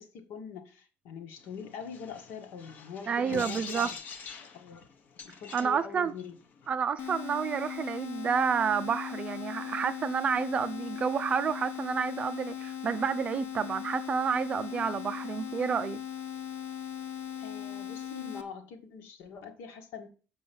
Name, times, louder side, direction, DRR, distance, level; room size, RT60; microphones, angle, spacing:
voice 1, 0.0-4.0 4.5-4.9 5.2-6.4 14.7-14.9 17.4-20.1, left 6 dB, 80° left, 1.8 m, -43 dB
sound 1, 1.4-6.7, left 5 dB, 40° left, 1.0 m, -45 dB
voice 2, 3.1-3.9 5.5-6.1 6.7-16.0, right 6 dB, 30° right, 0.4 m, -30 dB
sound 2, 7.0-18.4, left 9 dB, 60° left, 1.2 m, -39 dB
7.0 x 5.5 x 6.9 m
cardioid pair, 175°, 4 cm